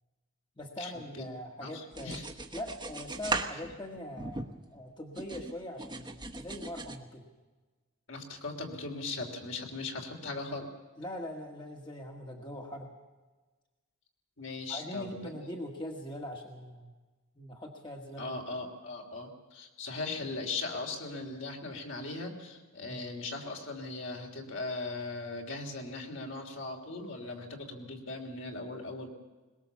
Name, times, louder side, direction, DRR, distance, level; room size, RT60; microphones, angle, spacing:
voice 1, 0.6-2.2 2.5-4.4 4.7-7.3 11.0-12.9 14.7-16.9 17.4-18.4 22.8-23.0, left 1 dB, 20° left, 1 dB, 1.6 m, -42 dB
voice 2, 1.6-2.3 8.1-10.7 14.4-15.5 18.2-29.1, left 3 dB, 60° left, 2 dB, 3.2 m, -39 dB
sound 1, 1.9-4.8 5.2-7.0, right 2 dB, 20° right, 1.2 m, -38 dB
22.0 x 20.5 x 7.1 m, 1.3 s
head